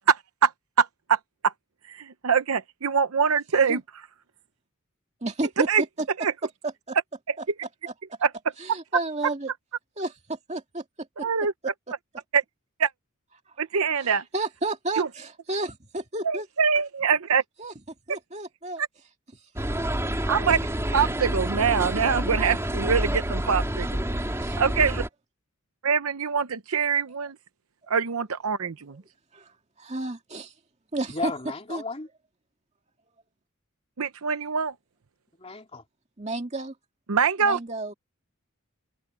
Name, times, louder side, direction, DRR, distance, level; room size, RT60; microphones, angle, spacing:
voice 1, 0.1-0.5 0.8-1.5 1.9-4.0 5.6-5.8 6.2-6.3 7.3-7.4 8.2-8.3 11.2-11.5 12.3-12.4 12.8-12.9 13.6-14.2 15.0-15.1 16.2-17.4 18.8-18.9 20.3-20.6 20.9-24.0 24.6-25.1 25.8-27.4 27.9-29.0 34.0-34.7 37.1-37.6, right 6 dB, 85° right, 0.8 m, -24 dB
voice 2, 5.2-5.7 6.9-7.0 7.9-8.0 8.6-9.5 10.0-10.8 11.2-11.3 11.6-11.7 14.0-16.5 17.6-17.7 18.1-18.8 24.1-24.6 29.3-29.5 29.8-30.5 30.9-31.3 31.7-31.8 36.2-36.7 37.4-37.9, right 2 dB, 30° right, 2.2 m, -32 dB
sound 1, 19.6-25.1, right 1 dB, 15° right, 3.1 m, -28 dB
voice 3, 31.1-32.1 35.4-35.8, left 3 dB, 30° left, 2.9 m, -34 dB
open air
head